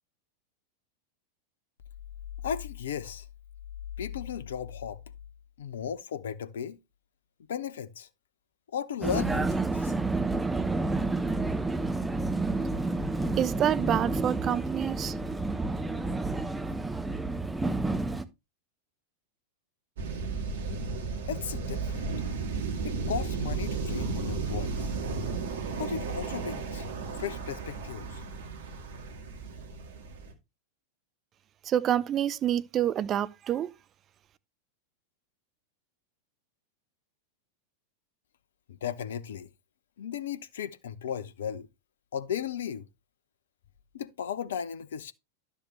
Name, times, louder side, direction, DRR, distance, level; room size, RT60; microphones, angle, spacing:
voice 1, 2.4-3.2 4.0-5.0 5.6-6.8 7.5-8.1 8.7-9.9 21.3-22.0 22.8-24.9 25.7-26.8 27.2-28.2 38.8-39.5 40.0-41.7 42.1-42.8 43.9-45.1, left 8 dB, 60° left, 0.8 m, -35 dB
Vehicle, 9.0-18.3, right 3 dB, 10° right, 0.8 m, -30 dB
voice 2, 13.3-15.1 31.6-33.7, right 10 dB, 30° right, 0.5 m, -27 dB
sound 1, 20.0-30.3, right 4 dB, 60° right, 2.1 m, -34 dB
12.0 x 6.7 x 3.2 m
figure-of-eight pair, 90°, 0 cm